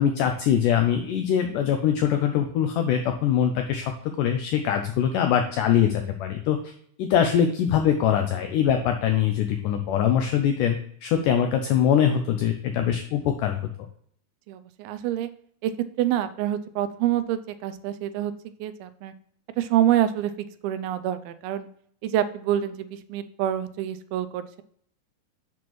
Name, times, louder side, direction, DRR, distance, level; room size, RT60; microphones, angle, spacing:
voice 1, 0.0-3.9 4.2-6.7 7.0-13.6, left 9 dB, 80° left, 6 dB, 1.9 m, -23 dB
voice 2, 14.5-15.3 15.6-15.7 16.0-18.3 18.6-19.1 19.6-20.3 20.6-21.7 22.0-24.6, right 11 dB, 85° right, 12 dB, 2.4 m, -26 dB
7.2 x 5.9 x 3.0 m, 0.62 s
omnidirectional pair, 4.3 m